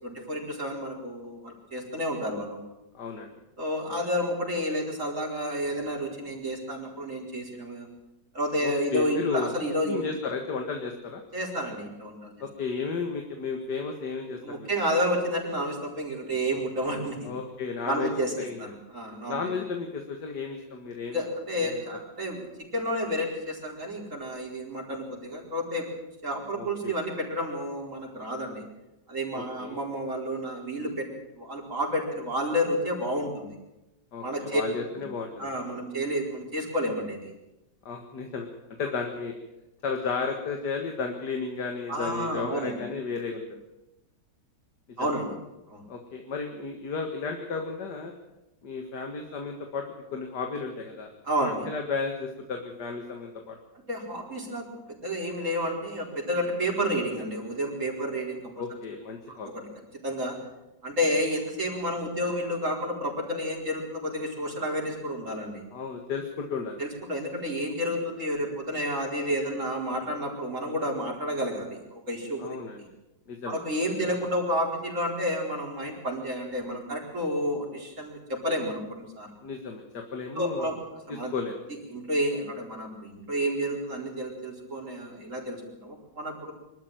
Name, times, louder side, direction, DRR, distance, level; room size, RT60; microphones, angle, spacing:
voice 1, 0.0-2.7 3.6-7.9 8.3-10.0 11.3-12.3 14.4-17.3 17.8-18.3 18.6-19.5 21.1-22.5 22.7-25.9 26.2-28.6 29.1-31.1 31.3-33.5 34.2-34.6 35.4-37.3 41.9-42.8 45.0-45.3 45.7-45.9 51.2-51.6 53.9-58.5 59.5-59.6 60.0-60.4 60.8-65.6 66.8-72.6 73.5-79.3 80.3-80.8 81.1-81.3 81.9-86.5, equal, 45° right, 0 dB, 5.0 m, -30 dB
voice 2, 2.9-3.3 8.6-9.5 9.9-11.2 12.4-14.7 17.2-18.1 18.4-18.7 19.3-21.2 21.6-21.8 26.6-27.0 29.3-29.8 34.1-35.5 37.9-38.5 38.8-39.3 39.8-43.6 45.0-45.1 45.9-48.1 48.6-51.1 51.4-53.6 58.6-59.5 65.7-66.8 72.4-72.8 73.3-73.6 79.4-80.7 81.3-81.6, left 4 dB, 70° left, 3 dB, 2.3 m, -33 dB
24.0 x 13.5 x 9.1 m, 0.97 s
omnidirectional pair, 1.9 m